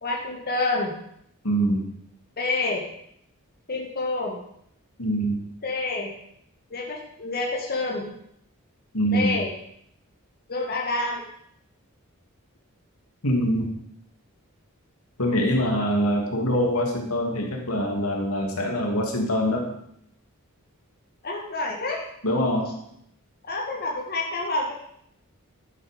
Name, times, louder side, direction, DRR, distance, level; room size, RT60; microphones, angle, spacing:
voice 1, 0.0-1.0 2.4-2.8 3.7-4.4 5.6-6.1 6.7-8.1 9.1-9.5 10.5-11.2 21.2-22.1 23.4-24.7, left 2 dB, 45° left, -1 dB, 1.9 m, -28 dB
voice 2, 1.4-1.9 5.0-5.4 8.9-9.4 13.2-13.7 15.2-19.7 22.2-22.7, equal, 75° left, 1 dB, 2.6 m, -24 dB
12.0 x 8.7 x 5.3 m, 0.73 s
head